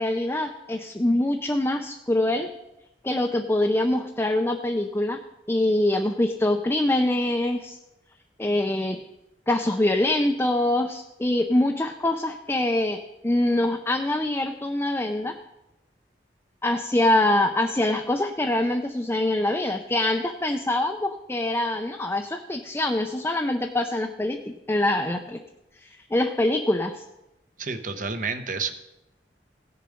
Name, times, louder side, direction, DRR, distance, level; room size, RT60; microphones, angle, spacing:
voice 1, 0.0-2.5 3.0-5.2 5.5-7.8 8.4-9.0 9.5-15.4 16.6-25.4 26.1-27.0, left 1 dB, 15° left, 4 dB, 0.5 m, -24 dB
voice 2, 27.6-28.7, right 5 dB, 45° right, 9 dB, 0.9 m, -29 dB
16.5 x 6.8 x 5.1 m, 0.92 s
head